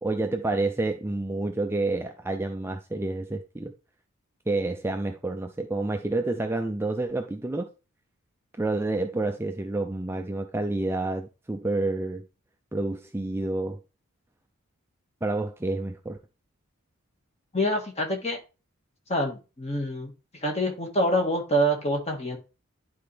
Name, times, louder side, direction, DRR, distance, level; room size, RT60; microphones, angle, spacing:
voice 1, 0.0-3.7 4.5-7.7 8.6-12.2 12.7-13.8 15.2-16.2, right 2 dB, 10° right, 0.4 m, -29 dB
voice 2, 17.5-18.4 19.1-20.1 20.4-22.4, equal, 30° left, 1.7 m, -26 dB
11.0 x 4.3 x 3.4 m
head